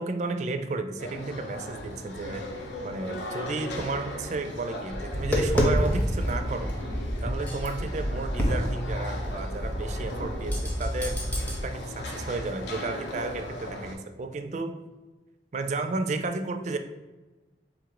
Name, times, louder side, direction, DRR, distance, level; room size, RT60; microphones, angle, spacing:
voice 1, 0.0-2.5 2.8-6.7 7.2-11.2 11.6-14.8 15.5-16.8, right 3 dB, 40° right, 8 dB, 0.3 m, -33 dB
sound 1, 1.0-13.9, left 1 dB, 80° left, 0.7 m, -38 dB
Tap, 4.9-11.6, equal, 10° left, 0.6 m, -28 dB
3.6 x 2.5 x 4.6 m, 1.2 s
head